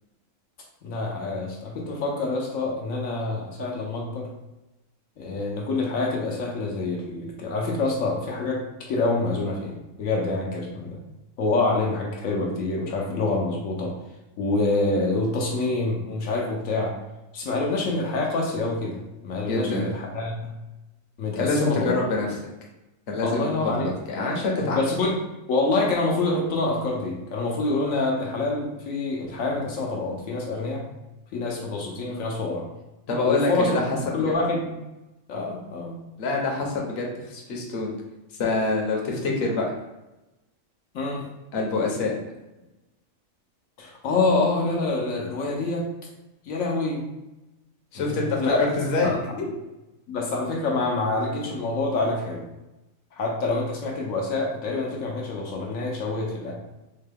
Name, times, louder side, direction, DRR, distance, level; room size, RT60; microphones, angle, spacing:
voice 1, 0.8-4.3 5.2-11.0 11.4-14.0 14.4-17.0 17.3-20.5 21.2-22.0 23.2-23.9 24.6-30.8 31.3-32.6 33.3-33.8 34.1-34.6 35.3-36.0 40.9-41.2 43.8-45.9 46.5-47.0 48.0-48.6 49.0-49.2 50.1-52.4 53.2-56.5, left 3 dB, 80° left, -1 dB, 1.1 m, -26 dB
voice 2, 19.5-19.9 21.4-22.3 23.1-24.8 33.1-34.3 36.2-37.9 38.4-39.6 41.5-42.1 47.9-48.4 48.8-49.1 49.4-49.5, left 3 dB, 55° left, -1 dB, 1.0 m, -26 dB
4.4 x 2.2 x 3.3 m, 0.99 s
omnidirectional pair, 1.4 m